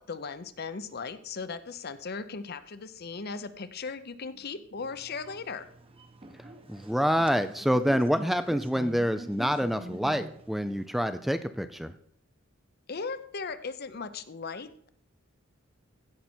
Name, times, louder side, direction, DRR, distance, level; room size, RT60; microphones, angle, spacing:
voice 1, 0.0-5.7 12.9-14.9, left 4 dB, 50° left, 12 dB, 0.7 m, -37 dB
sound 1, 4.8-10.9, right 1 dB, 30° right, 0.9 m, -45 dB
voice 2, 6.4-11.9, equal, ahead, 10 dB, 0.4 m, -27 dB
16.0 x 5.8 x 4.4 m, 0.64 s
head